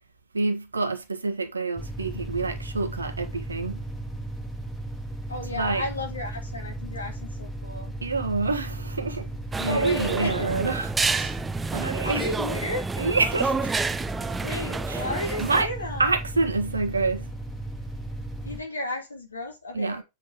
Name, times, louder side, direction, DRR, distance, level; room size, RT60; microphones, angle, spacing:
voice 1, 0.3-3.8 5.5-5.8 8.0-9.3 9.6-11.4 11.7-12.2 13.0-13.7 14.9-15.1 15.4-15.7 16.0-17.3 19.7-20.0, right 3 dB, 75° right, 1.5 m, -27 dB
sound 1, 1.8-18.6, right 1 dB, 10° left, 2.3 m, -36 dB
voice 2, 5.3-7.9 9.6-10.5 12.0-12.9 14.4-16.1 18.4-20.0, left 1 dB, 75° left, 2.5 m, -33 dB
sound 2, 9.5-15.6, right 4 dB, 15° right, 0.6 m, -29 dB
8.2 x 6.0 x 3.8 m
figure-of-eight pair, 90°, 0 cm